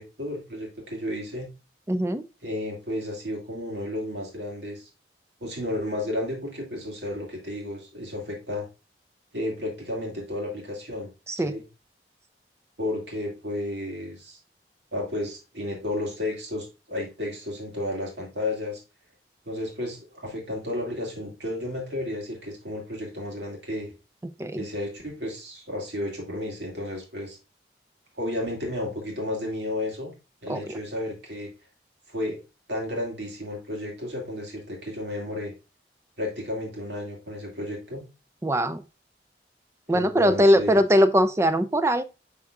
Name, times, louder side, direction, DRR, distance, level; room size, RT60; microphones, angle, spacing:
voice 1, 0.0-1.5 2.4-4.9 5.4-8.7 9.3-11.1 11.4-11.6 12.8-14.4 14.9-18.8 19.5-23.9 24.6-27.4 28.2-30.1 30.4-31.5 32.1-32.4 32.7-35.5 36.2-38.1 39.9-40.8, left 1 dB, 70° right, 0 dB, 2.2 m, -32 dB
voice 2, 1.9-2.3 11.3-11.5 24.4-24.6 30.5-30.8 38.4-38.8 39.9-42.0, equal, 15° right, 12 dB, 0.4 m, -21 dB
11.0 x 3.7 x 2.4 m, 0.28 s
head